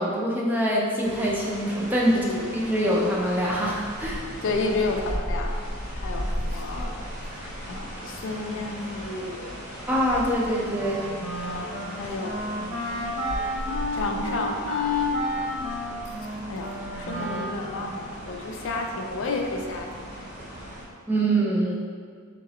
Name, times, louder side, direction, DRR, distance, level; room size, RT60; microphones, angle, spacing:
voice 1, 0.0-2.2 2.5-4.2 9.9-11.0 21.1-21.8, right 1 dB, 10° right, -4 dB, 0.6 m, -24 dB
sound 1, 1.0-20.8, equal, 35° right, 1.0 m, -36 dB
voice 2, 2.1-2.5 4.4-5.5 6.0-7.0 7.7-9.6 11.4-13.0 13.9-15.1 16.5-20.1, left 3 dB, 65° left, 2 dB, 0.5 m, -31 dB
Wind instrument woodwind instrument, 10.7-18.0, left 2 dB, 70° right, 0.8 m, -31 dB
3.8 x 3.0 x 4.1 m, 2.1 s
head